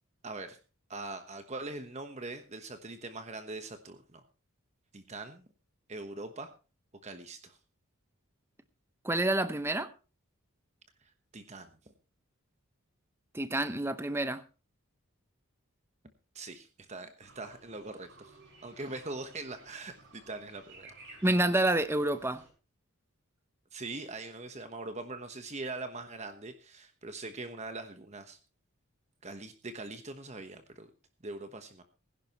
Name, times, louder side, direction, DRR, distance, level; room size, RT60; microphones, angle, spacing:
voice 1, 0.2-0.6 0.9-4.2 4.9-5.4 5.9-6.5 7.0-7.6 11.0-11.8 16.3-20.9 23.7-28.4 29.2-30.9 31.2-31.8, right 2 dB, 30° right, 1.1 m, -42 dB
voice 2, 9.0-9.9 13.3-14.4 21.2-22.4, right 1 dB, 10° right, 0.7 m, -28 dB
sound 1, 17.2-22.5, right 2 dB, 55° right, 7.1 m, -56 dB
20.5 x 11.0 x 3.0 m
head